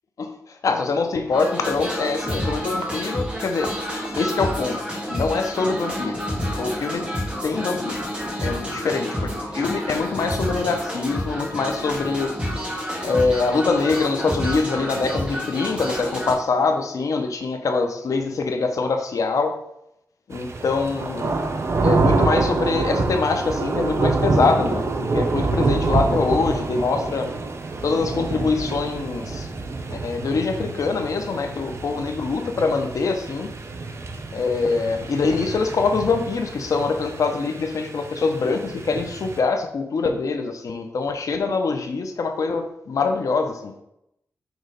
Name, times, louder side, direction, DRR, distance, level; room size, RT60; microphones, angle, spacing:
voice 1, 0.2-3.7 4.2-4.8 5.1-6.2 6.6-7.0 7.4-8.0 8.4-12.3 13.0-19.6 20.3-21.3 21.8-27.3 27.8-29.5 29.9-33.5 34.3-43.7, left 4 dB, 70° left, 6 dB, 0.8 m, -24 dB
sound 1, 1.3-16.3, equal, 20° right, 1.8 m, -29 dB
sound 2, 20.3-39.4, right 3 dB, 50° right, 0.8 m, -26 dB
6.1 x 3.1 x 5.1 m, 0.80 s
wide cardioid pair, 90°, 6 cm